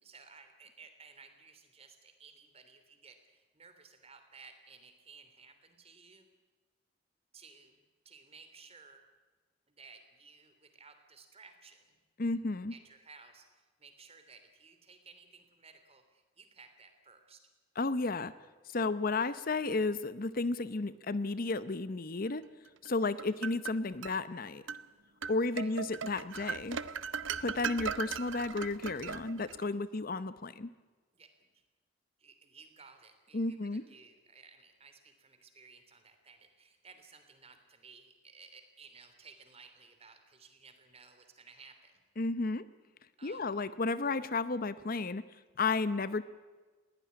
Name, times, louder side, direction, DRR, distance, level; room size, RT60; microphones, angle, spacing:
voice 1, 0.0-6.3 7.3-7.8 8.0-9.1 9.7-11.9 12.7-17.5 23.2-23.4 25.5-25.7 31.1-31.6 32.2-42.0 43.2-43.5, right 4 dB, 30° right, 7 dB, 3.2 m, -57 dB
voice 2, 12.2-12.7 17.8-18.3 18.7-22.4 22.8-24.6 25.3-26.8 27.4-30.7 33.3-33.8 42.2-42.6 43.2-45.2 45.6-46.2, left 3 dB, 45° left, 14 dB, 0.7 m, -33 dB
sound 1, 22.8-24.2 24.7-24.8 25.2-29.6, right 6 dB, 70° right, 0.8 m, -38 dB
21.5 x 17.0 x 9.7 m, 1.3 s
head